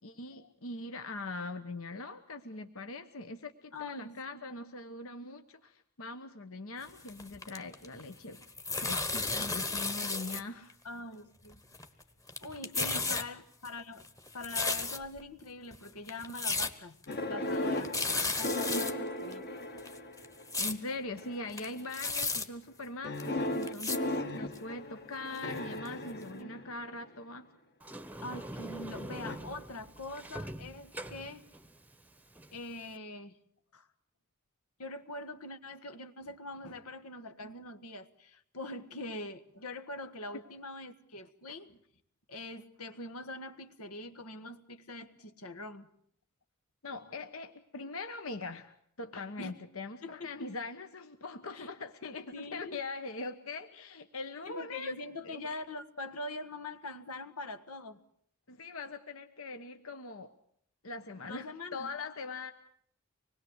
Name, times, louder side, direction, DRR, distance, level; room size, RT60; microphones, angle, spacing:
voice 1, 0.0-8.4 8.7-10.7 12.8-13.3 18.7-18.9 20.6-27.5 41.5-41.6 46.8-54.9 55.2-55.4 58.5-60.3 60.8-62.5, left 3 dB, 65° left, 8 dB, 1.2 m, -42 dB
voice 2, 3.7-4.4 10.8-11.6 12.4-14.0 14.3-17.0 17.3-19.4 22.0-22.1 26.0-26.6 28.2-31.4 32.5-33.4 33.7-33.9 34.8-41.8 42.3-45.9 49.4-49.6 50.0-50.5 51.5-51.7 52.3-52.8 54.4-58.0 61.2-61.9, left 2 dB, 85° left, 9 dB, 1.7 m, -43 dB
sound 1, 6.9-8.1 8.3-10.4 10.7-10.8 11.5-12.0 12.3-13.2 13.7-15.2 15.7-15.8 16.1-16.7 17.0-17.1 17.5-17.6 17.8-18.9 19.3-19.4 19.8-20.8 21.2-21.3 21.5-22.5 23.2-23.3 23.6-24.0 24.5-24.6 25.4-25.5 25.9-26.0 26.2-26.3, left 3 dB, 15° left, 1.4 m, -34 dB
sound 2, 17.1-20.4 21.2-21.6 23.0-27.2 29.2-29.4, left 1 dB, 50° left, 1.9 m, -36 dB
Sliding door, 27.8-33.0, right 1 dB, 5° right, 0.9 m, -44 dB
25.5 x 20.5 x 8.1 m, 0.66 s
head